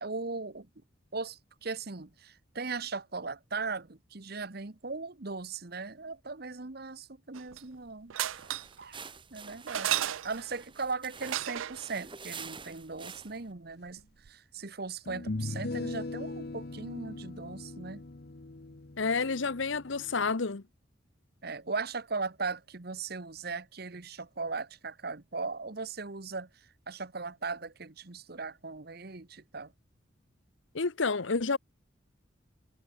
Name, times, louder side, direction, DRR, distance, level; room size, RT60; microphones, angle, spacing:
voice 1, 0.0-0.7 1.1-8.1 8.8-14.0 14.3-18.0 21.4-26.5 26.9-29.7, right 4 dB, 50° right, 1.2 m, -38 dB
sound 1, 7.3-7.8 8.1-8.8 9.7-10.5 11.2-11.9 14.0-14.1 14.3-14.4, right 12 dB, 85° right, 0.5 m, -33 dB
sound 2, 8.2-13.5, right 6 dB, 25° right, 3.3 m, -47 dB
sound 3, 14.0-14.1 15.1-20.3, left 2 dB, 50° left, 0.9 m, -39 dB
voice 2, 19.0-20.6 30.7-31.6, left 4 dB, 75° left, 1.0 m, -29 dB
head